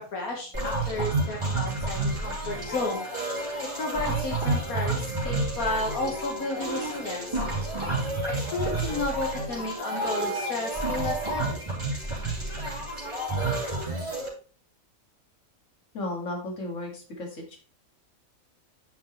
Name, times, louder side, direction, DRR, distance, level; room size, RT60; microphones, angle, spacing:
voice 1, 0.0-3.1 3.6-7.4 8.3-11.6, left 2 dB, 80° left, 0 dB, 1.9 m, -32 dB
sound 1, 0.5-14.3, right 2 dB, 20° right, 3.2 m, -30 dB
voice 2, 15.9-17.6, left 2 dB, 60° left, 1 dB, 2.3 m, -34 dB
9.4 x 6.0 x 3.1 m, 0.39 s
omnidirectional pair, 1.5 m